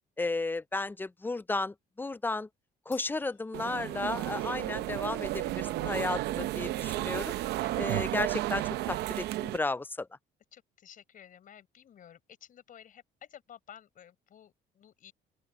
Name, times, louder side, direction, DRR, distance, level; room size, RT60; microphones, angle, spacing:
voice 1, 0.2-2.5 2.9-7.3 7.8-10.1, left 3 dB, 10° left, 0.4 m, -34 dB
Crash cymbal, 2.9-4.6, left 14 dB, 75° left, 4.9 m, -59 dB
sound 1, 3.5-9.6, right 16 dB, 80° right, 0.7 m, -33 dB
voice 2, 10.5-15.1, left 9 dB, 55° left, 5.2 m, -53 dB
open air
cardioid pair, 110°, 17 cm